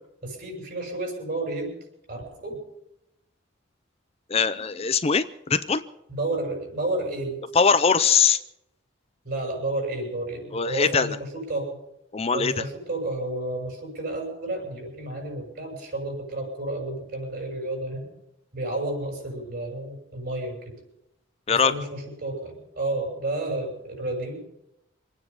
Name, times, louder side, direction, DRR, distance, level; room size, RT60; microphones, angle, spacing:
voice 1, 0.2-1.7 2.1-2.6 6.1-7.4 9.2-11.8 12.3-18.1 18.5-20.7 21.5-24.4, right 2 dB, 50° right, 1 dB, 6.9 m, -31 dB
voice 2, 4.3-5.8 7.5-8.4 10.5-11.2 12.1-12.6 21.5-21.7, left 6 dB, 30° left, 12 dB, 0.5 m, -21 dB
26.0 x 9.5 x 5.6 m, 0.83 s
head